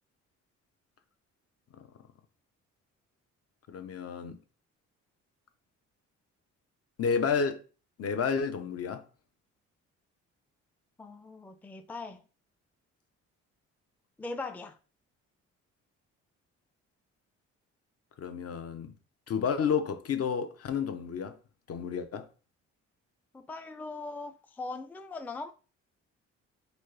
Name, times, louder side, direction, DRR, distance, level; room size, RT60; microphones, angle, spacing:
voice 1, 3.7-4.4 7.0-7.6 8.0-9.0 18.2-18.9 19.3-21.4 21.7-22.3, left 6 dB, 50° left, 0.8 m, -31 dB
voice 2, 11.0-12.2 14.2-14.8 23.3-25.5, left 3 dB, 5° left, 0.4 m, -40 dB
4.1 x 3.8 x 3.3 m
cardioid pair, 90°, 30 cm